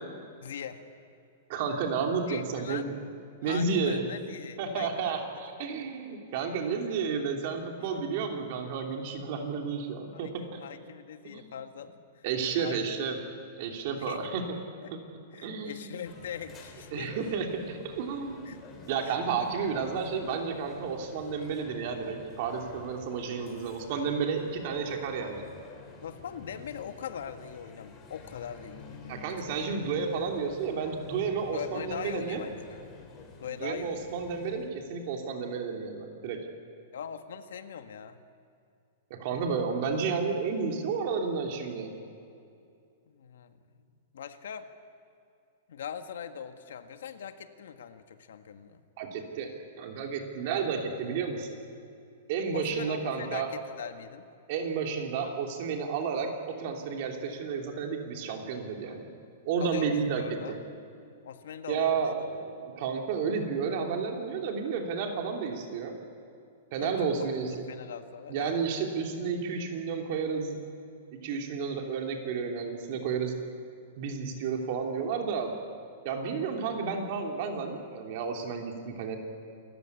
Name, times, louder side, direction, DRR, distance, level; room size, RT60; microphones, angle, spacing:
voice 1, 0.4-0.8 2.3-2.9 3.4-5.1 5.8-5.9 10.1-12.3 12.6-13.0 13.9-14.3 14.8-14.9 15.3-17.1 18.4-18.6 19.2-19.4 26.0-29.6 31.5-32.8 33.4-34.2 36.9-38.2 43.1-43.8 44.1-44.7 45.7-48.8 52.5-54.3 59.6-60.6 61.2-62.0 66.8-68.6, left 8 dB, 80° left, 8 dB, 1.6 m, -41 dB
voice 2, 1.5-2.9 3.4-4.1 4.6-10.6 11.2-11.5 12.2-13.1 13.6-14.4 14.9-15.0 15.4-15.8 16.9-25.4 29.1-32.4 33.6-36.5 39.1-41.9 49.0-49.5 49.8-51.5 52.3-53.5 54.5-59.1 59.4-60.6 61.7-66.0 66.7-67.5 68.3-70.6 71.2-73.4 74.0-75.5 76.0-79.2, right 5 dB, 40° right, 2 dB, 3.0 m, -31 dB
sound 1, 16.0-34.7, left 4 dB, 20° left, 2.9 m, -50 dB
27.5 x 15.0 x 9.7 m, 2.5 s
supercardioid pair, 175°, 0 cm